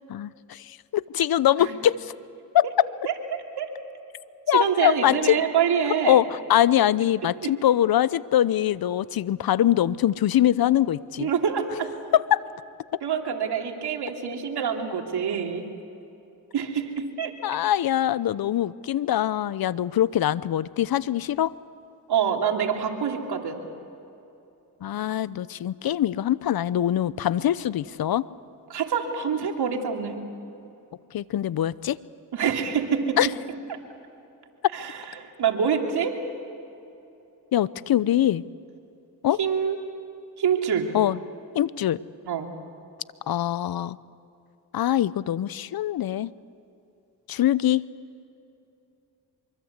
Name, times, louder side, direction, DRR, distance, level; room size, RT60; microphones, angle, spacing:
voice 1, 0.0-2.1 2.5-2.9 4.5-5.4 6.1-11.3 12.1-12.4 12.9-13.0 17.4-21.5 24.8-28.2 31.1-32.0 33.2-33.3 37.5-38.4 39.2-39.4 40.9-41.2 41.5-42.0 43.3-44.0 44.7-46.3 47.3-47.8, left 11 dB, 60° left, 19 dB, 0.8 m, -23 dB
voice 2, 3.0-3.7 4.5-6.2 7.4-7.5 11.2-11.9 13.0-15.6 16.5-17.3 22.1-23.6 28.7-30.2 32.3-33.2 33.7-33.8 34.7-34.9 35.2-36.1 39.4-39.8 40.4-40.9 42.3-42.5, right 7 dB, 70° right, 2 dB, 3.0 m, -26 dB
25.0 x 23.5 x 8.2 m, 2.8 s
supercardioid pair, 60°, 41 cm